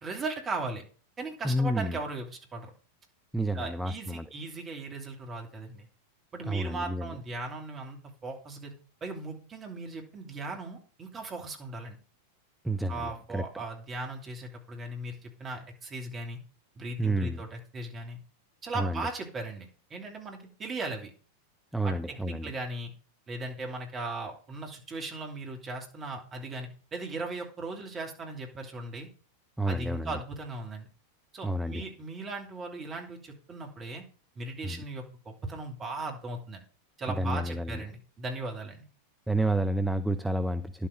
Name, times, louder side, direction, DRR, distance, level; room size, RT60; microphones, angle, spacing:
voice 1, 0.0-0.8 1.2-2.7 3.5-5.8 6.3-8.7 9.0-12.0 12.9-16.4 16.8-18.2 18.6-21.1 21.8-22.9 23.3-29.1 29.7-30.9 31.3-34.0 34.4-36.6 37.0-38.9, right 2 dB, 25° right, 2 dB, 2.9 m, -38 dB
voice 2, 1.4-2.0 3.3-4.3 6.5-7.1 12.6-13.4 17.0-17.4 18.7-19.1 21.7-22.5 29.6-30.2 31.4-31.8 34.6-34.8 37.2-37.8 39.3-40.9, right 1 dB, 5° right, 8 dB, 0.6 m, -30 dB
11.0 x 7.4 x 5.2 m, 0.39 s
figure-of-eight pair, 90°, 0 cm